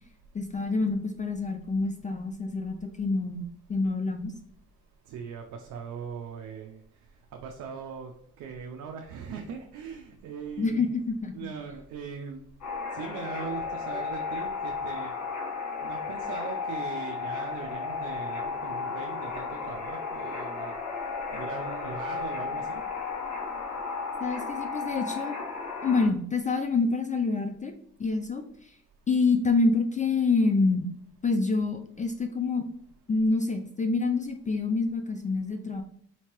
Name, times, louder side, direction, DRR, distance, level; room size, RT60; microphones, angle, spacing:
voice 1, 0.3-4.4 10.6-11.5 24.2-25.4 25.8-27.7 28.0-28.8 29.1-30.9 31.2-32.7 33.1-35.8, left 3 dB, 25° left, 6 dB, 0.4 m, -27 dB
voice 2, 5.1-6.8 7.4-8.1 8.4-10.9 11.3-12.4 12.9-15.1 15.8-20.8 21.3-22.8, right 6 dB, 80° right, 3 dB, 0.5 m, -40 dB
sound 1, 12.6-26.1, left 5 dB, 70° left, 1.5 m, -34 dB
4.4 x 2.8 x 3.0 m, 0.67 s
cardioid pair, 90°, 30 cm